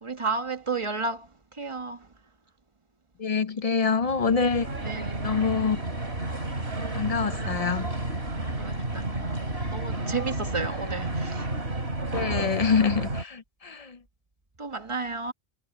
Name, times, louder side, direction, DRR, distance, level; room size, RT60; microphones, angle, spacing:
voice 1, 0.0-2.1 4.8-5.2 8.6-9.4 9.7-11.5 14.6-15.3, right 4 dB, 30° right, 1.3 m, -32 dB
voice 2, 3.2-4.7 5.2-5.8 6.9-7.9 12.1-14.0, left 5 dB, 45° left, 0.6 m, -25 dB
sound 1, 4.0-13.2, right 2 dB, 80° right, 3.9 m, -31 dB
omnidirectional pair, 1.1 m